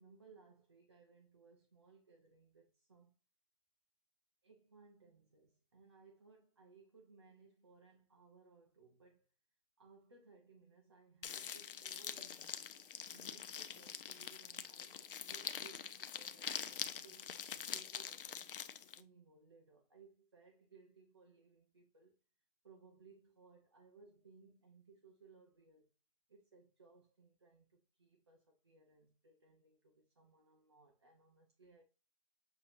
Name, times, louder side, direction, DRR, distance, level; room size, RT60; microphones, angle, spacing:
voice 1, 0.0-3.2 4.4-9.3 9.8-12.7 13.1-18.5 18.9-22.2 22.6-25.9 26.3-31.8, right 5 dB, 25° right, 0.5 m, -64 dB
sound 1, 11.2-19.0, left 8 dB, 60° left, 0.6 m, -45 dB
6.8 x 2.8 x 2.5 m
hypercardioid pair, 170°, 31 cm